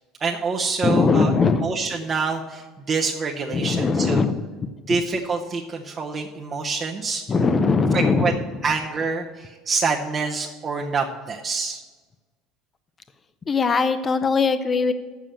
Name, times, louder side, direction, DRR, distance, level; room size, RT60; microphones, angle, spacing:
voice 1, 0.2-1.3 1.6-4.3 4.9-7.2 7.9-8.3 8.6-11.8, right 4 dB, 30° right, 0 dB, 0.7 m, -26 dB
voice 2, 0.8-1.7 3.5-4.4 4.9-5.0 7.3-8.4 13.5-14.9, left 4 dB, 25° left, 11 dB, 0.5 m, -20 dB
7.4 x 6.9 x 7.5 m, 1.4 s
cardioid pair, 130°, 0 cm